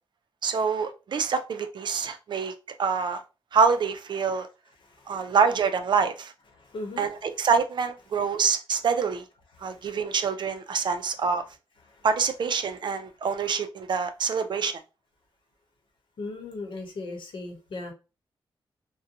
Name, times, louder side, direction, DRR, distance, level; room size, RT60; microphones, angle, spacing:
voice 1, 0.4-2.5 2.8-3.2 3.5-4.5 5.1-6.3 7.0-9.2 9.6-11.4 12.0-14.8, right 5 dB, 60° right, 0.4 m, -26 dB
voice 2, 4.8-5.3 6.6-7.1 9.6-9.9 11.9-12.1 16.2-17.9, left 2 dB, 70° left, 0.8 m, -38 dB
2.5 x 2.1 x 2.8 m
wide cardioid pair, 110°, 9 cm